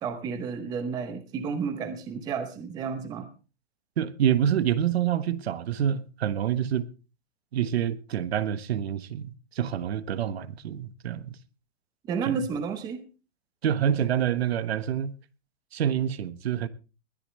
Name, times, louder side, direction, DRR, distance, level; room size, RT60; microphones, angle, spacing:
voice 1, 0.0-3.3 12.0-13.0, right 6 dB, 10° right, 0.8 m, -31 dB
voice 2, 4.0-6.9 7.5-11.4 12.3-12.4 13.6-15.1 15.7-16.7, right 9 dB, 55° right, 1.4 m, -27 dB
21.0 x 12.5 x 3.2 m
hypercardioid pair, 160°, 37 cm